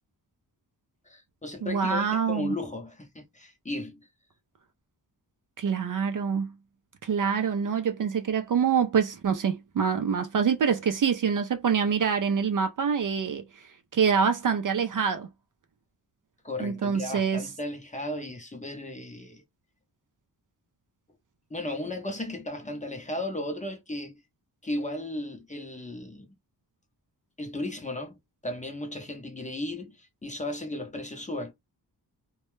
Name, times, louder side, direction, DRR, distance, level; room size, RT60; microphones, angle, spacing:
voice 1, 1.1-4.1 16.4-19.4 21.5-24.2 24.6-26.3 27.4-31.5, left 1 dB, 20° left, 0.6 m, -35 dB
voice 2, 1.6-2.5 5.6-6.5 7.0-15.3 16.6-17.5, right 6 dB, 50° right, 0.4 m, -26 dB
2.2 x 2.0 x 3.0 m
wide cardioid pair, 120°, 42 cm